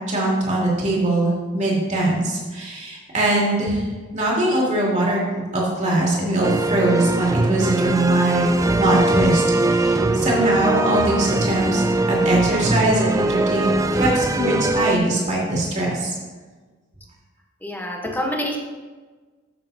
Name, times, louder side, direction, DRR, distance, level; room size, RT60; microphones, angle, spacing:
voice 1, 0.1-3.8 4.1-5.2 5.5-8.4 8.8-16.1, right 2 dB, 35° right, -5 dB, 2.7 m, -21 dB
sound 1, 6.4-15.0, right 2 dB, 15° right, 0.3 m, -21 dB
voice 2, 17.6-18.6, left 1 dB, 10° left, 0 dB, 1.1 m, -26 dB
13.0 x 6.6 x 2.8 m, 1.3 s
head